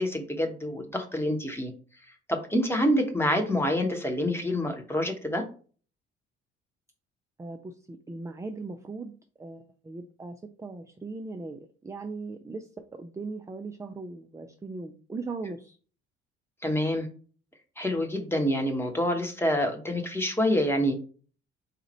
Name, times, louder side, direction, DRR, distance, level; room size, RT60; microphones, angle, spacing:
voice 1, 0.0-1.7 2.3-5.4 16.6-17.1 17.8-21.0, equal, 5° left, 3 dB, 1.1 m, -27 dB
voice 2, 7.4-9.1 9.4-15.8, right 3 dB, 10° right, 6 dB, 0.4 m, -39 dB
4.0 x 2.5 x 4.2 m, 0.40 s
figure-of-eight pair, 45°, 32 cm